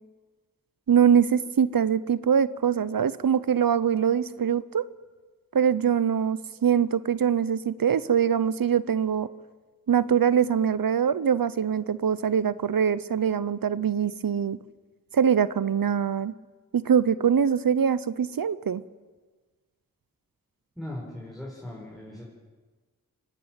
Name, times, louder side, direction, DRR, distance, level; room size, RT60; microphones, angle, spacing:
voice 1, 0.9-4.9 5.5-9.3 9.9-14.6 15.1-16.3 16.7-18.8, right 8 dB, 75° right, 17 dB, 0.7 m, -23 dB
voice 2, 20.8-22.2, left 1 dB, ahead, -4 dB, 5.1 m, -38 dB
24.5 x 12.5 x 9.0 m, 1.4 s
cardioid pair, 45°, 35 cm